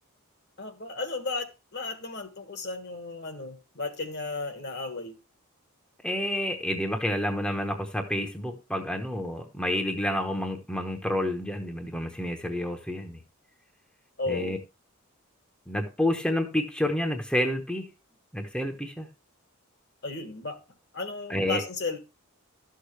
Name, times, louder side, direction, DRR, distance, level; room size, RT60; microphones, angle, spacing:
voice 1, 0.6-5.2 14.2-14.6 20.0-20.6 20.9-22.0, left 3 dB, 50° left, 1.4 m, -34 dB
voice 2, 6.0-13.2 14.3-14.6 15.7-17.8 18.3-19.1 21.3-21.7, left 1 dB, 5° left, 0.9 m, -29 dB
12.5 x 6.5 x 3.2 m
head